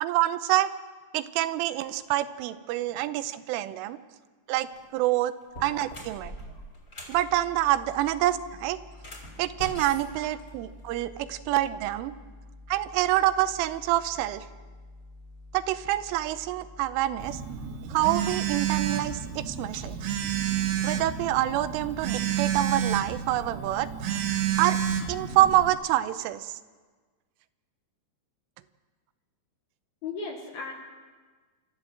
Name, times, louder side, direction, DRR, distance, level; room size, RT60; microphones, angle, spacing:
voice 1, 0.0-0.7 1.1-4.0 4.5-5.3 5.6-6.4 7.1-8.8 9.4-12.1 12.7-14.4 15.5-17.4 17.9-20.0 20.8-23.9 24.6-24.8 25.1-26.6, right 14 dB, 85° right, 13 dB, 3.3 m, -26 dB
sound 1, 4.6-4.9 5.4-7.2 8.9-11.0, equal, 20° left, 2.3 m, -43 dB
sound 2, 7.1-22.8, left 2 dB, 85° left, 3.9 m, -49 dB
Telephone, 17.2-25.7, right 9 dB, 65° right, 3.1 m, -30 dB
voice 2, 30.0-30.7, left 4 dB, 65° left, 1 dB, 2.9 m, -37 dB
27.0 x 13.5 x 7.7 m, 1.4 s
omnidirectional pair, 5.7 m